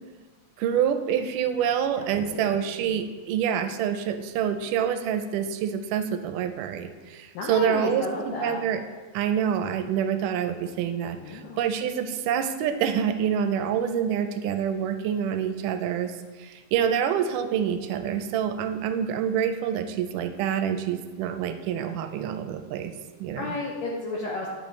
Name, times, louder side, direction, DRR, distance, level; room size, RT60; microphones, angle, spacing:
voice 1, 0.6-8.8 9.1-16.1 16.4-22.9 23.2-23.5, right 8 dB, 85° right, 7 dB, 2.0 m, -27 dB
voice 2, 2.0-2.6 7.3-8.6 11.2-11.6 23.4-24.5, left 3 dB, 75° left, -1 dB, 1.5 m, -33 dB
10.5 x 5.3 x 3.1 m, 1.3 s
omnidirectional pair, 3.7 m